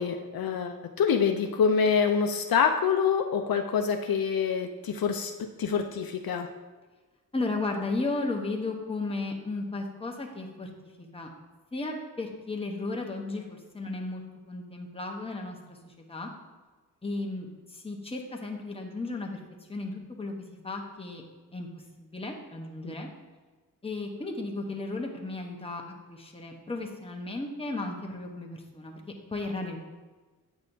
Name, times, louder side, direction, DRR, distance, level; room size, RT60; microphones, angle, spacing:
voice 1, 0.0-5.3 5.6-6.5 22.8-22.9, left 6 dB, 65° left, 5 dB, 0.6 m, -26 dB
voice 2, 7.3-10.7 11.0-11.3 11.7-14.2 14.5-16.3 17.0-19.4 19.7-20.3 20.6-21.2 21.5-23.1 23.8-25.8 26.1-29.0 29.3-29.8, left 2 dB, 15° left, 1 dB, 1.0 m, -34 dB
8.6 x 6.3 x 2.7 m, 1.3 s
wide cardioid pair, 90°, 38 cm